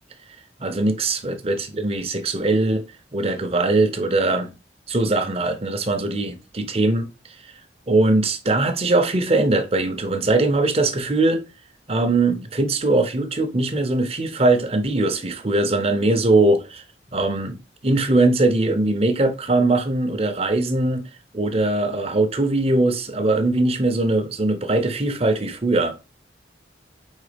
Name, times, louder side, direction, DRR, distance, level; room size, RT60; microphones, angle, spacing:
voice 1, 0.6-2.8 3.1-4.5 4.9-7.1 7.9-11.4 11.9-16.8 17.1-21.1 21.3-26.1, right 2 dB, 35° right, 0.8 m, -21 dB
4.5 x 4.1 x 5.1 m
head